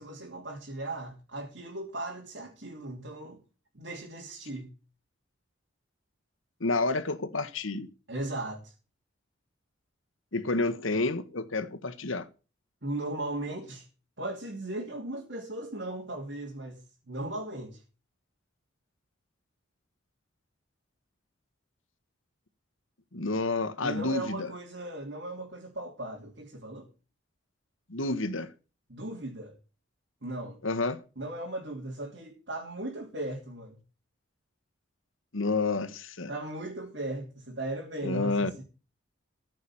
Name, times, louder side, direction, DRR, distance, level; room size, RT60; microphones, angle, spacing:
voice 1, 0.0-3.4 3.7-4.7 8.1-8.7 12.8-13.8 14.2-16.8 17.1-17.8 23.8-26.9 28.9-29.5 30.2-30.6 31.2-33.8 36.3-38.6, right 1 dB, 60° right, 3.1 m, -37 dB
voice 2, 6.6-7.9 10.3-12.3 23.1-24.5 27.9-28.5 30.6-31.0 35.3-36.3 38.0-38.5, left 3 dB, 85° left, 1.5 m, -29 dB
14.5 x 6.2 x 8.7 m
head